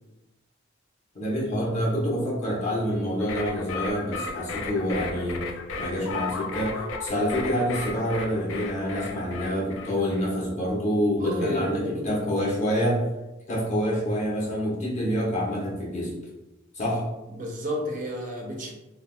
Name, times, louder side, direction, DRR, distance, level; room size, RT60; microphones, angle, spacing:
voice 1, 1.1-5.5 5.8-13.0 13.5-16.1 16.7-17.0, equal, 35° left, -4 dB, 0.8 m, -27 dB
sound 1, 3.2-10.3, left 3 dB, 65° left, 0.3 m, -35 dB
voice 2, 11.2-12.2 17.3-18.7, equal, 40° right, 0 dB, 0.5 m, -31 dB
3.4 x 2.2 x 2.2 m, 0.99 s
head